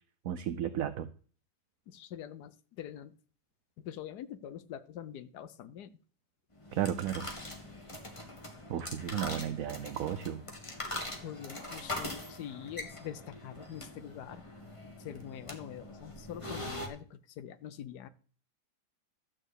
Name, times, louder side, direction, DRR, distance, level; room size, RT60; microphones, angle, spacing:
voice 1, 0.2-1.1 6.7-7.3 8.7-10.4, right 10 dB, 65° right, 10 dB, 1.0 m, -34 dB
voice 2, 1.9-3.1 3.8-6.0 11.2-14.4 15.0-18.1, left 10 dB, 80° left, 12 dB, 1.3 m, -44 dB
sound 1, 6.6-16.9, left 1 dB, 20° left, 1.6 m, -43 dB
12.5 x 4.5 x 8.2 m, 0.42 s
omnidirectional pair, 1.7 m